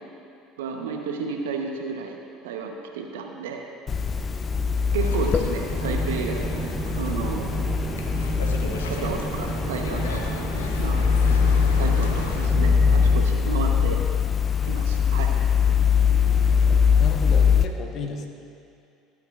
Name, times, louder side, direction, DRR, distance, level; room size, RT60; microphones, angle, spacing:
voice 1, 0.6-2.2 2.4-3.6 4.9-7.8 8.9-10.4 10.8-11.3 11.8-14.0 14.6-15.4, right 5 dB, 75° right, 2 dB, 0.9 m, -32 dB
sound 1, 3.9-17.6, left 6 dB, 30° left, 0.5 m, -22 dB
sound 2, 5.0-12.5, left 4 dB, 80° left, 0.8 m, -37 dB
sound 3, 5.7-13.3, right 5 dB, 35° right, 0.5 m, -33 dB
voice 2, 17.0-18.3, left 3 dB, 50° left, 3 dB, 1.2 m, -33 dB
15.0 x 9.1 x 2.5 m, 2.5 s
hypercardioid pair, 65°, 0 cm